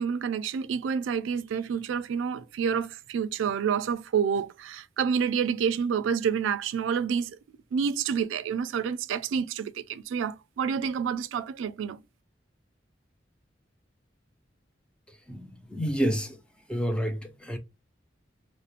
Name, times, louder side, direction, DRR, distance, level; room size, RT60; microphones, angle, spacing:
voice 1, 0.0-7.4 7.7-12.0, right 7 dB, 85° right, 0.3 m, -28 dB
voice 2, 15.1-16.4 16.7-17.6, equal, 5° left, 0.3 m, -29 dB
2.4 x 2.0 x 2.8 m
head